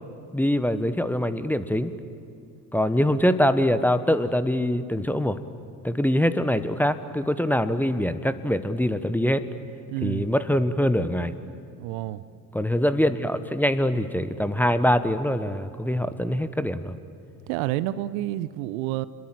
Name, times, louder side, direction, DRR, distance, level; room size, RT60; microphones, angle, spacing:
voice 1, 0.3-1.9 2.7-5.4 5.8-9.4 10.0-11.3 12.5-16.9, equal, 5° left, 12 dB, 1.2 m, -23 dB
voice 2, 9.9-10.3 11.8-12.2 17.5-19.1, right 15 dB, 60° right, 16 dB, 0.9 m, -29 dB
28.0 x 22.0 x 7.9 m, 2.6 s
hypercardioid pair, 70°, 49 cm